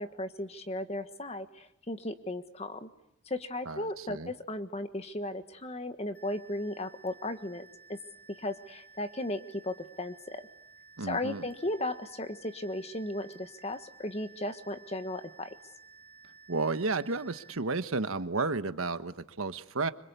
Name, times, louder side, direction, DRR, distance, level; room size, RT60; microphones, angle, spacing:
voice 1, 0.0-2.9 3.3-8.0 8.4-10.4 11.0-15.5, left 1 dB, 30° left, 9 dB, 1.5 m, -36 dB
voice 2, 3.7-4.3 11.0-11.5 16.5-19.9, right 3 dB, 85° right, 11 dB, 1.3 m, -32 dB
sound 1, 6.1-17.6, right 5 dB, 10° left, 2.9 m, -55 dB
26.5 x 25.5 x 8.3 m, 0.80 s
head